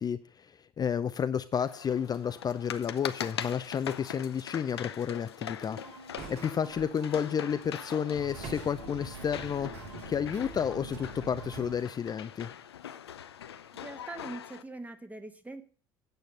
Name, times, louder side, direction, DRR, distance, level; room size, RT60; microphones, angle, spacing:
voice 1, 0.0-12.5, left 7 dB, 30° left, 10 dB, 0.5 m, -31 dB
sound 1, 1.5-14.6, left 9 dB, 85° left, 0.5 m, -42 dB
sound 2, 5.6-11.7, right 3 dB, 85° right, 2.4 m, -45 dB
sound 3, 6.2-6.9 8.4-8.9, right 5 dB, 50° right, 2.5 m, -44 dB
voice 2, 13.7-15.6, right 2 dB, 10° right, 8 dB, 1.3 m, -42 dB
9.0 x 7.9 x 5.2 m, 0.43 s
figure-of-eight pair, 65°, 13 cm